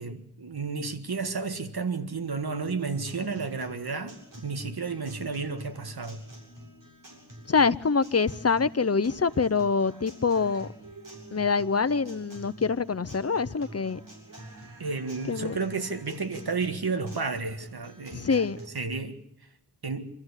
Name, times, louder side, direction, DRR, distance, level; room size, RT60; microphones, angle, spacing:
voice 1, 0.0-6.2 14.8-18.5 18.7-19.2 19.8-20.1, right 4 dB, 70° right, 1.9 m, -32 dB
Guitar, 2.7-18.7, right 1 dB, 55° right, 7.3 m, -47 dB
voice 2, 7.5-10.7 11.3-14.0 15.3-15.6 18.1-18.6, left 5 dB, 40° left, 0.8 m, -25 dB
26.0 x 14.0 x 8.2 m
wide cardioid pair, 75°, 39 cm